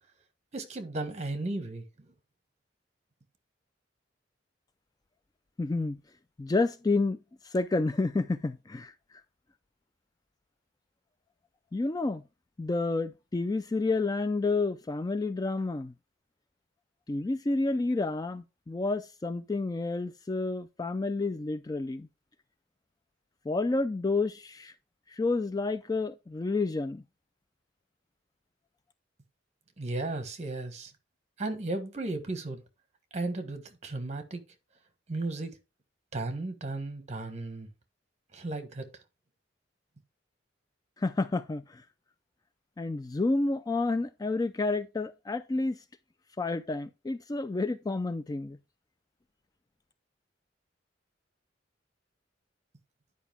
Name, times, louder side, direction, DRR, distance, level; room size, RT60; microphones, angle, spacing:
voice 1, 0.5-2.1 29.8-30.9 31.4-32.6 33.1-34.4 35.1-35.5 36.1-37.7 38.3-38.9, right 2 dB, 35° right, 1.4 m, -35 dB
voice 2, 5.6-6.0 6.4-7.2 7.4-8.9 11.7-12.2 12.6-15.9 17.1-22.1 23.5-24.7 25.1-27.0 41.0-41.8 42.8-45.8 46.4-48.6, left 3 dB, 20° left, 0.3 m, -30 dB
10.0 x 5.2 x 3.5 m
head